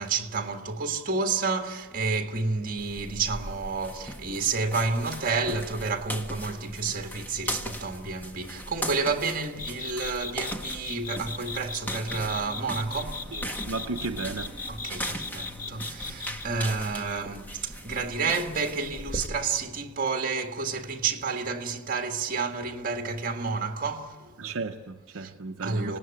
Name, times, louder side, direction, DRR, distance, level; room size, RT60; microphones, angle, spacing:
voice 1, 0.0-13.3 14.7-24.3 25.1-25.3 25.6-26.0, right 4 dB, 40° right, 1.8 m, -30 dB
sound 1, 2.8-19.3, equal, 10° left, 1.3 m, -38 dB
sound 2, 9.6-16.5, left 4 dB, 40° left, 1.2 m, -37 dB
voice 2, 13.3-14.5 24.4-26.0, right 3 dB, 65° right, 0.7 m, -34 dB
26.0 x 19.0 x 9.0 m
head